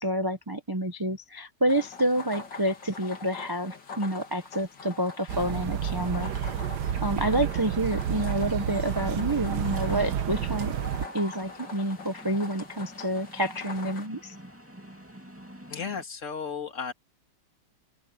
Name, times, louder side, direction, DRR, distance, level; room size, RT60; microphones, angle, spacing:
voice 1, 0.0-6.3 7.0-10.8 11.1-14.3, right 1 dB, 35° right, 0.3 m, -28 dB
sound 1, 1.7-14.1, left 4 dB, 75° left, 3.5 m, -44 dB
sound 2, 5.3-11.1, right 9 dB, 70° right, 1.4 m, -30 dB
Mechanisms, 6.5-7.1 7.4-7.6 7.9-16.0, right 1 dB, 5° right, 2.4 m, -47 dB
voice 2, 15.7-16.9, left 6 dB, 40° left, 2.5 m, -34 dB
open air
omnidirectional pair, 2.0 m